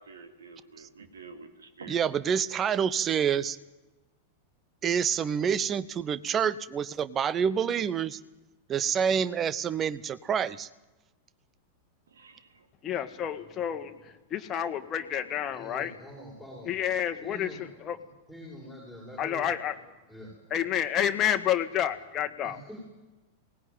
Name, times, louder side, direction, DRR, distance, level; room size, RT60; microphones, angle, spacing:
voice 1, 0.0-2.0 12.1-12.6, right 4 dB, 70° right, 7 dB, 2.6 m, -48 dB
voice 2, 1.9-3.6 4.8-8.2 8.7-10.7, right 7 dB, 25° right, 17 dB, 0.9 m, -27 dB
voice 3, 12.8-15.9 16.7-18.0 19.2-19.7 20.5-22.6, left 10 dB, 30° left, 6 dB, 1.6 m, -29 dB
voice 4, 15.5-16.8 17.2-17.6 18.3-19.5 20.1-20.3 22.4-22.8, equal, 10° right, -2 dB, 7.2 m, -44 dB
22.5 x 19.0 x 9.2 m, 1.1 s
figure-of-eight pair, 90°, 0 cm